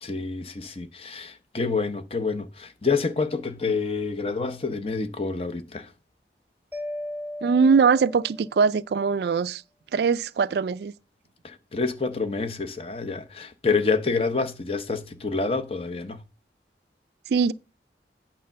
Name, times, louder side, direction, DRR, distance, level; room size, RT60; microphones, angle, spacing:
voice 1, 0.0-5.9 11.4-16.2, left 4 dB, 35° left, 0.8 m, -28 dB
Mallet percussion, 6.7-8.8, left 1 dB, 10° right, 0.6 m, -36 dB
voice 2, 7.4-9.6 9.9-10.9 17.3-17.5, right 5 dB, 70° right, 0.3 m, -21 dB
8.7 x 4.3 x 6.7 m
head